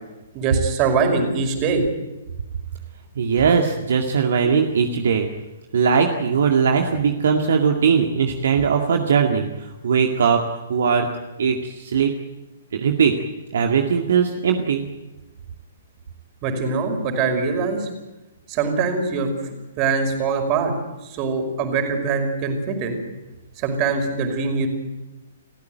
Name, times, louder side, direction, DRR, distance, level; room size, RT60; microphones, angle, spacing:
voice 1, 0.3-1.8 16.4-17.9 18.5-19.3 19.8-20.7 21.0-23.0 23.6-24.7, right 4 dB, 30° right, 5 dB, 5.3 m, -23 dB
voice 2, 3.2-5.3 5.7-10.4 10.7-11.1 11.4-12.1 12.7-13.1 13.5-14.9, right 6 dB, 60° right, 3 dB, 2.1 m, -19 dB
30.0 x 14.5 x 9.3 m, 1.1 s
figure-of-eight pair, 120°, 0 cm